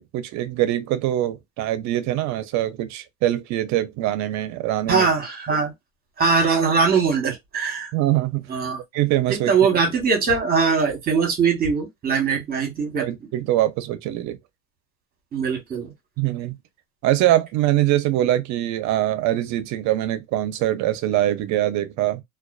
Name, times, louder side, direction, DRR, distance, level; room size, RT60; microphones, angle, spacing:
voice 1, 0.0-5.1 7.9-8.4 8.9-9.5 13.0-14.4 16.2-16.6 17.0-22.2, right 14 dB, 50° right, 0.5 m, -23 dB
voice 2, 4.9-5.7 6.2-7.9 8.5-8.8 9.3-13.1 15.3-15.9, right 5 dB, 25° right, 1.0 m, -21 dB
2.3 x 2.3 x 2.2 m
cardioid pair, 145°, 37 cm